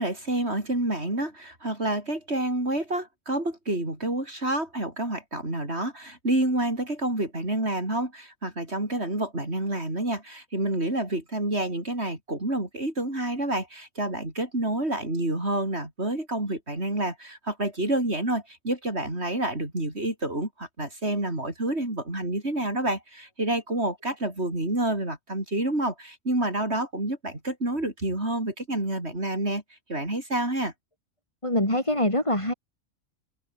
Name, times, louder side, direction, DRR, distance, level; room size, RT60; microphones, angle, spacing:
voice 1, 0.0-29.6 29.9-30.7, right 1 dB, 50° right, 6.4 m, -28 dB
voice 2, 31.4-32.5, left 1 dB, 20° left, 6.6 m, -24 dB
open air
omnidirectional pair, 1.4 m